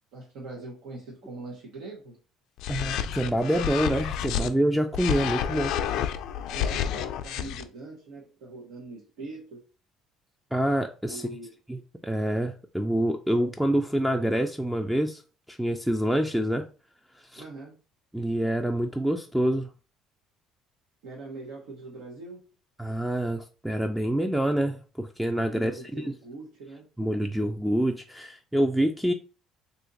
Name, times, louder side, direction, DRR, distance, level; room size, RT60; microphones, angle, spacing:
voice 1, 0.1-2.2 6.5-9.7 11.1-11.5 17.4-17.8 21.0-22.5 25.5-26.9, right 3 dB, 85° right, 0.9 m, -42 dB
sound 1, 2.6-4.5 4.9-7.6, left 9 dB, 75° left, 0.4 m, -29 dB
voice 2, 2.7-5.7 10.5-11.2 12.0-15.2 15.5-16.6 17.3-17.4 18.1-19.7 22.8-25.8 27.0-29.1, right 1 dB, 5° right, 0.3 m, -26 dB
2.8 x 2.5 x 3.8 m
cardioid pair, 100°, 0 cm